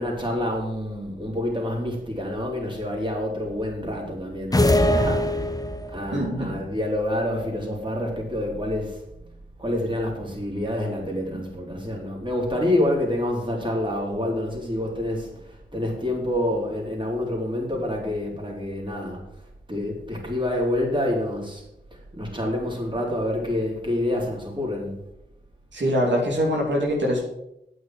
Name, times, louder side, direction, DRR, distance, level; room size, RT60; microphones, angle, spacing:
voice 1, 0.0-5.5 5.9-9.0 9.6-19.2 19.7-21.6 21.9-25.0, left 1 dB, 25° right, -2 dB, 4.0 m, -27 dB
sound 1, 4.5-6.1, left 1 dB, 20° left, 0.9 m, -21 dB
voice 2, 6.1-6.5 25.7-27.2, equal, 80° right, -2 dB, 2.9 m, -23 dB
9.0 x 6.3 x 7.6 m, 0.83 s
cardioid pair, 50°, 19 cm